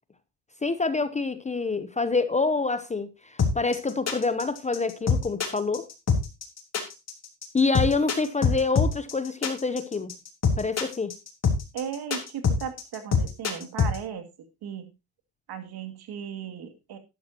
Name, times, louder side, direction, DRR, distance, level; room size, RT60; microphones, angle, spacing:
voice 1, 0.6-5.9 7.5-10.2 10.6-11.2, left 4 dB, 15° left, 0.8 m, -27 dB
sound 1, 3.4-14.0, left 5 dB, 35° left, 3.5 m, -24 dB
voice 2, 11.7-14.3 14.6-14.9 15.5-17.0, right 8 dB, 55° right, 2.6 m, -36 dB
12.5 x 12.0 x 2.9 m
cardioid pair, 120°, 45 cm